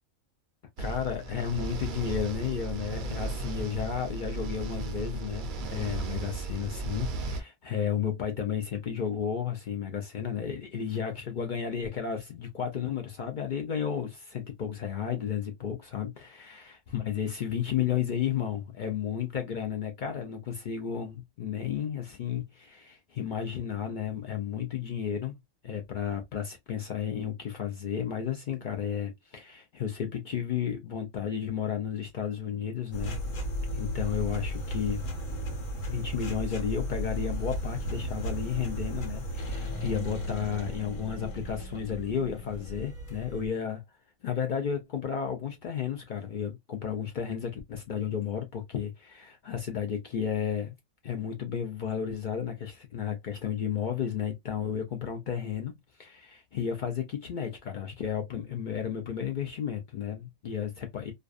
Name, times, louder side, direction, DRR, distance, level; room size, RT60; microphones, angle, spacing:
voice 1, 0.8-16.6 16.9-25.4 25.6-33.2 33.7-35.0 35.8-43.8 44.2-50.8 51.0-61.1, left 8 dB, 65° left, 0.5 m, -33 dB
sound 1, 0.8-7.4, right 3 dB, 70° right, 0.4 m, -35 dB
sound 2, 32.9-43.5, equal, 85° left, 1.3 m, -35 dB
2.5 x 2.2 x 2.3 m
omnidirectional pair, 1.4 m